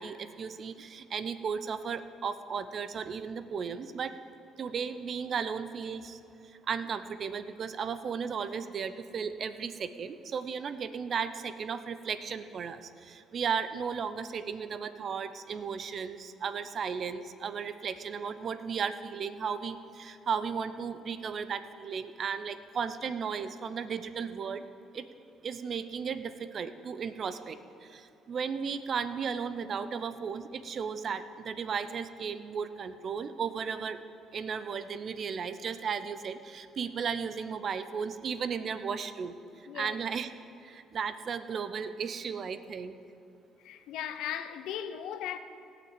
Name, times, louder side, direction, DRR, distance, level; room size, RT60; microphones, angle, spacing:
voice 1, 0.0-4.1 4.6-6.2 6.7-24.7 24.9-25.1 25.4-34.0 34.3-40.3 40.6-43.0, right 6 dB, 50° right, 0.7 m, -35 dB
voice 2, 43.6-45.4, left 10 dB, 80° left, 0.6 m, -37 dB
17.0 x 6.0 x 7.3 m
cardioid pair, 85°, 0 cm